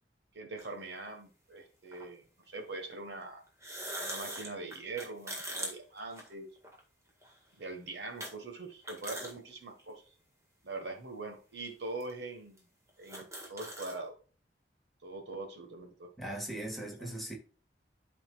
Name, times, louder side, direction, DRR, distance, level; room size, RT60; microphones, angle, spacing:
voice 1, 0.3-3.4 4.0-6.5 7.6-10.1 10.6-12.7 13.0-14.1 15.0-16.4, right 3 dB, 70° right, 1.5 m, -43 dB
sound 1, 0.6-0.7 1.9-2.0 3.5-6.8 7.2-7.3 8.2-8.3 8.7-9.3 9.8-9.9 10.7-10.9 11.7-11.8 12.0-12.1 12.6-12.7 12.9-14.0, right 1 dB, 15° right, 1.9 m, -41 dB
voice 2, 16.2-17.3, right 1 dB, ahead, 1.9 m, -39 dB
12.5 x 4.2 x 2.4 m
head